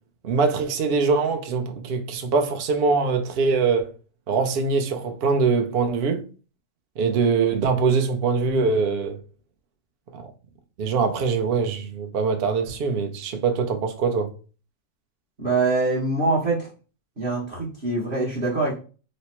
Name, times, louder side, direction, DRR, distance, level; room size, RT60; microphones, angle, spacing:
voice 1, 0.2-3.9 4.3-6.2 7.0-9.2 10.1-10.3 10.8-14.3, right 4 dB, 85° right, 0.5 m, -23 dB
voice 2, 15.4-16.7 17.2-18.8, right 3 dB, 45° right, 0.8 m, -24 dB
3.1 x 2.0 x 4.2 m
omnidirectional pair, 1.7 m